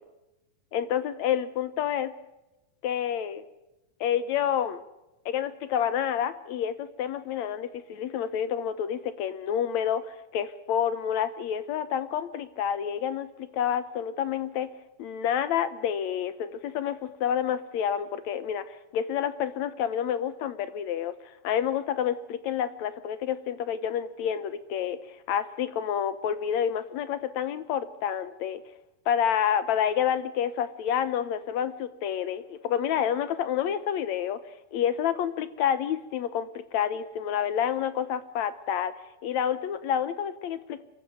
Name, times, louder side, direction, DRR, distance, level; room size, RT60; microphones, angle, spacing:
voice 1, 0.7-2.1 2.8-3.4 4.0-4.8 5.3-14.7 15.0-28.6 29.1-34.4 34.7-38.9 39.2-40.8, left 9 dB, 70° left, 13 dB, 1.8 m, -29 dB
25.5 x 15.0 x 9.3 m, 0.96 s
omnidirectional pair, 4.2 m